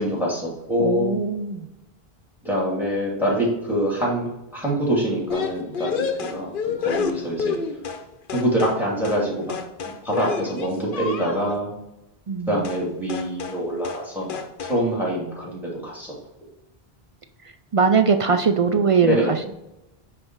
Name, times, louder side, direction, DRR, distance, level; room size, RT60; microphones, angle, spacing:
voice 1, 0.0-1.1 2.4-4.3 4.5-6.0 6.3-7.6 8.3-9.5 10.0-11.7 12.5-16.1 19.0-19.4, equal, ahead, -4 dB, 2.5 m, -25 dB
voice 2, 0.8-1.7 12.3-12.6 17.7-19.5, right 5 dB, 55° right, 7 dB, 0.4 m, -21 dB
sound 1, 5.3-8.0 8.3-8.8 9.0-9.2 9.5-11.6 12.6-12.8 13.1-13.6 13.8-14.0 14.3-14.8, left 6 dB, 60° left, 0.8 m, -29 dB
9.5 x 3.3 x 4.6 m, 0.92 s
omnidirectional pair, 1.0 m